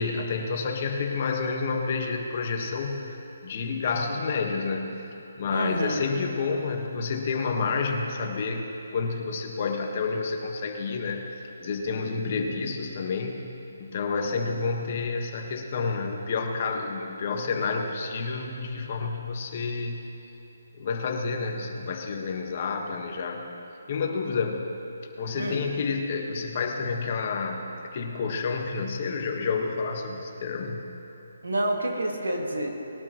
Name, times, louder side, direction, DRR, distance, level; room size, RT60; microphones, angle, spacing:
voice 1, 0.0-3.2 3.4-5.0 5.4-11.3 11.6-13.5 13.8-20.0 20.7-23.4 23.9-24.7 25.2-30.9, left 4 dB, 45° left, 2 dB, 1.5 m, -29 dB
voice 2, 5.5-6.1 25.3-25.6 31.4-32.7, right 1 dB, 85° right, 0 dB, 2.5 m, -28 dB
21.0 x 12.0 x 3.1 m, 3.0 s
hypercardioid pair, 155°, 0 cm